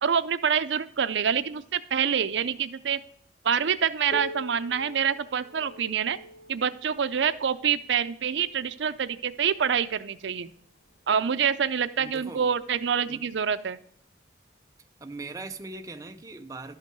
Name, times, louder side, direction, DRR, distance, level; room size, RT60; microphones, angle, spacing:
voice 1, 0.0-3.0 3.4-6.2 6.5-10.5 11.1-13.8, right 7 dB, 80° right, 0.5 m, -26 dB
Piano, 4.1-9.4 10.3-10.4 10.9-11.0 11.8-11.9 12.9-13.0, left 2 dB, 50° left, 0.7 m, -44 dB
voice 2, 12.0-12.5 13.1-13.3 15.0-16.7, right 3 dB, 20° right, 0.5 m, -40 dB
12.0 x 5.8 x 4.5 m
head